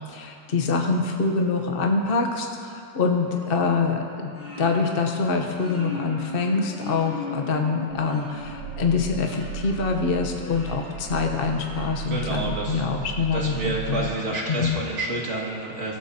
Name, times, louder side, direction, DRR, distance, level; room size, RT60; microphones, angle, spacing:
voice 1, 0.1-4.3 4.6-14.1 14.5-14.8, left 4 dB, 45° left, 2 dB, 0.8 m, -25 dB
sound 1, 3.3-13.1, left 1 dB, 90° left, 4.4 m, -40 dB
Growling, 7.9-14.2, right 10 dB, 75° right, 0.6 m, -36 dB
voice 2, 12.1-12.9 13.3-16.0, right 2 dB, 40° right, -3 dB, 2.5 m, -29 dB
23.0 x 14.0 x 2.8 m, 2.5 s
omnidirectional pair, 1.9 m